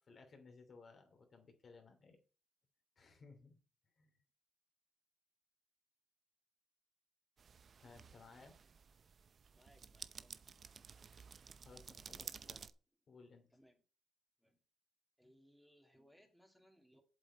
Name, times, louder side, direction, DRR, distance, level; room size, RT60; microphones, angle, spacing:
voice 1, 0.0-2.2 3.0-3.6 3.9-4.2 7.8-8.5 11.5-12.6 13.1-13.5, left 4 dB, 45° left, 4 dB, 2.9 m, -60 dB
sound 1, 7.4-12.7, right 6 dB, 45° right, 0.7 m, -54 dB
voice 2, 9.5-10.4 13.5-13.8 14.4-14.6 15.2-17.0, equal, ahead, 2 dB, 2.6 m, -68 dB
7.9 x 7.8 x 4.4 m, 0.36 s
cardioid pair, 90°, 0 cm